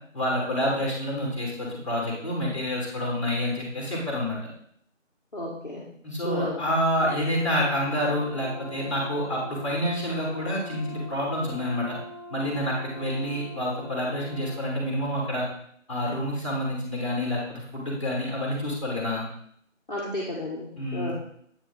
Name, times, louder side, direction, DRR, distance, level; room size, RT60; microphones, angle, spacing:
voice 1, 0.1-4.4 6.0-12.0 12.3-15.4 15.9-19.3 20.8-21.1, equal, 25° left, -3 dB, 2.1 m, -28 dB
voice 2, 5.3-5.8 6.2-6.6 19.9-21.1, left 1 dB, 40° left, -5 dB, 1.4 m, -32 dB
Brass instrument, 6.9-14.7, left 1 dB, 60° right, 3.1 m, -43 dB
8.3 x 4.9 x 3.8 m, 0.66 s
figure-of-eight pair, 175°, 38 cm